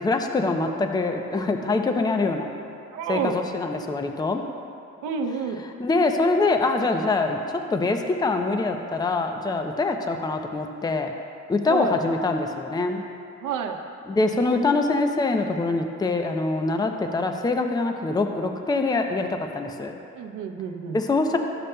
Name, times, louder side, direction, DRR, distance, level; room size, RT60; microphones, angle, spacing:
voice 1, 0.0-2.5 3.1-4.4 5.8-11.1 11.5-13.0 14.1-19.3 19.5-19.9 20.9-21.4, left 3 dB, 15° left, 5 dB, 0.5 m, -24 dB
voice 2, 2.9-3.4 5.0-5.6 11.7-11.9 13.4-13.8 20.1-21.0, right 6 dB, 80° right, 5 dB, 0.7 m, -29 dB
12.5 x 6.8 x 2.2 m, 2.5 s
cardioid pair, 90°, 30 cm